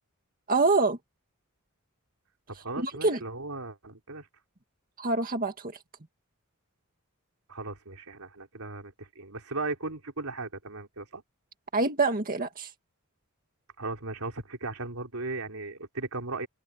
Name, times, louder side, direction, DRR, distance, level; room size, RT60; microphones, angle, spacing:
voice 1, 0.5-1.0 2.8-3.2 5.0-5.7 11.7-12.7, right 3 dB, 40° right, 2.0 m, -25 dB
voice 2, 2.6-4.3 7.5-11.2 13.8-16.5, right 3 dB, 80° right, 3.6 m, -37 dB
head